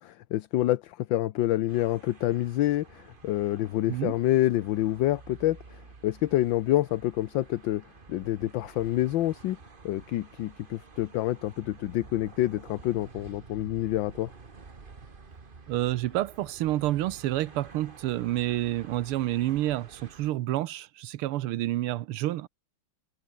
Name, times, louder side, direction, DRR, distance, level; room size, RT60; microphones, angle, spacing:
voice 1, 0.0-7.8 8.1-9.6 9.8-14.3, left 14 dB, 70° left, 1.4 m, -27 dB
sound 1, 1.7-20.3, right 4 dB, 25° right, 1.6 m, -50 dB
voice 2, 15.7-22.5, right 15 dB, 90° right, 1.7 m, -29 dB
omnidirectional pair, 2.3 m